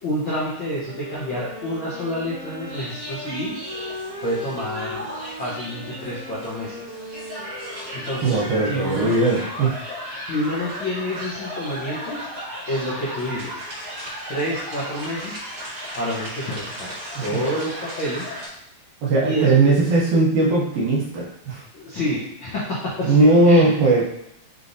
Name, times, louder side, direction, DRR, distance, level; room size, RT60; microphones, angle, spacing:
voice 1, 0.0-3.6 4.2-5.1 5.4-6.8 7.9-9.2 10.3-12.3 12.7-13.6 14.3-15.4 15.9-18.3 19.2-19.5 21.7-23.7, equal, 80° left, -8 dB, 1.1 m, -28 dB
sound 1, 0.8-8.8, left 1 dB, 30° left, 1.4 m, -38 dB
sound 2, 2.6-18.5, equal, 40° right, 1.3 m, -35 dB
voice 2, 8.2-9.8 17.2-17.4 19.0-21.6 23.1-24.1, right 3 dB, 70° right, -4 dB, 2.0 m, -18 dB
5.4 x 3.1 x 2.6 m, 0.81 s
omnidirectional pair, 3.8 m